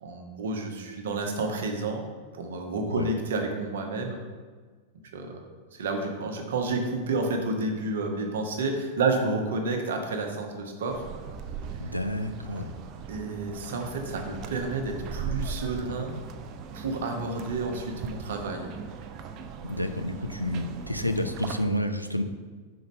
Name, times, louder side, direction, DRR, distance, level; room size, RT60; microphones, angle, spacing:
voice 1, 0.0-2.0 2.3-4.2 5.1-5.4 5.7-11.0 13.1-16.1 16.7-18.7, right 3 dB, 60° right, 3 dB, 0.9 m, -30 dB
sound 1, 10.9-21.7, right 6 dB, 35° right, 0.4 m, -39 dB
voice 2, 11.8-12.8 19.6-22.2, left 1 dB, 90° left, 7 dB, 0.4 m, -30 dB
5.2 x 3.8 x 5.2 m, 1.5 s
figure-of-eight pair, 90°, 0 cm